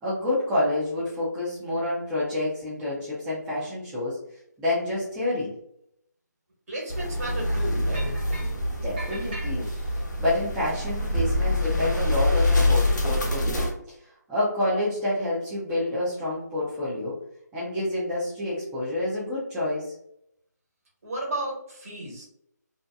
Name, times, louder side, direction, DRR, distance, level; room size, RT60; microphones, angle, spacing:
voice 1, 0.0-4.2 4.6-5.5 8.7-9.7 10.2-13.6 13.9-17.1 17.5-19.9, left 1 dB, 5° right, -10 dB, 0.3 m, -28 dB
voice 2, 6.7-8.1 21.0-22.2, right 1 dB, 55° right, -2 dB, 1.3 m, -33 dB
sound 1, 6.9-13.7, left 1 dB, 75° left, 0.8 m, -25 dB
sound 2, 7.9-8.6 9.0-10.0, right 1 dB, 35° right, 0.9 m, -41 dB
2.7 x 2.1 x 2.2 m, 0.75 s
figure-of-eight pair, 160°, 10 cm